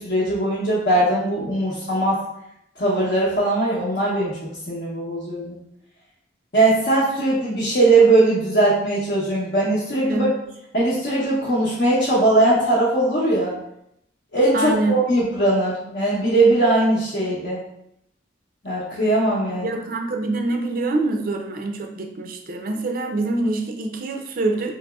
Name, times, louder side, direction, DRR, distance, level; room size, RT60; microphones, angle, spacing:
voice 1, 0.0-2.2 2.8-5.5 6.5-10.3 10.7-13.5 14.3-17.6 18.6-19.7, right 2 dB, 55° left, -8 dB, 0.8 m, -20 dB
voice 2, 14.5-15.0 19.5-24.7, right 2 dB, 50° right, 4 dB, 0.4 m, -25 dB
4.0 x 2.9 x 2.3 m, 0.80 s
head